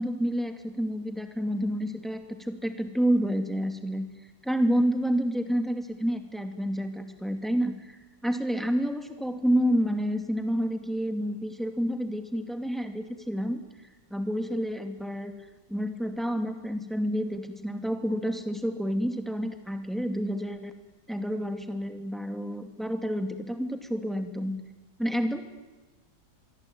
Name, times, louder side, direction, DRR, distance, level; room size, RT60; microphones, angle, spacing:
voice 1, 0.0-4.1 4.4-13.6 14.1-15.3 15.7-20.7 21.1-24.6 25.0-25.4, equal, ahead, 7 dB, 2.5 m, -29 dB
26.5 x 22.5 x 9.1 m, 1.2 s
omnidirectional pair, 1.9 m